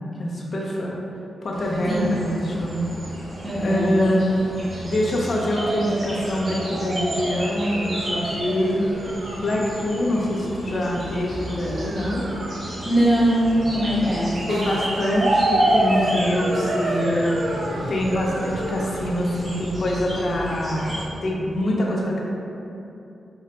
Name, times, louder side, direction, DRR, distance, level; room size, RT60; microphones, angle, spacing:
voice 1, 0.2-1.0 1.4-2.9 3.6-4.4 4.8-8.8 9.4-12.3 14.5-17.6 17.9-22.2, left 1 dB, 50° left, -3 dB, 0.7 m, -24 dB
sound 1, 1.5-21.0, right 1 dB, 50° right, 0.8 m, -34 dB
sound 2, 1.6-20.7, right 1 dB, 80° right, 0.5 m, -29 dB
voice 2, 3.4-4.0 12.8-14.4, right 1 dB, 5° right, -9 dB, 1.3 m, -21 dB
4.6 x 3.8 x 2.2 m, 2.8 s
cardioid pair, 100°, 0 cm